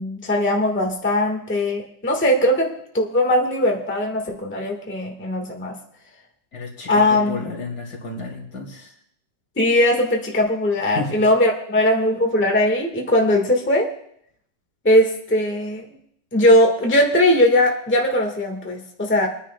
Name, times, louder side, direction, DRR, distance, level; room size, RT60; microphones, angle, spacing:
voice 1, 0.0-5.8 6.9-7.5 9.6-13.9 14.8-15.9 16.3-19.3, left 1 dB, 5° left, 1 dB, 1.3 m, -19 dB
voice 2, 6.5-9.0 10.9-11.2, left 4 dB, 65° left, 0 dB, 2.8 m, -32 dB
27.0 x 9.9 x 2.2 m, 0.67 s
omnidirectional pair, 1.9 m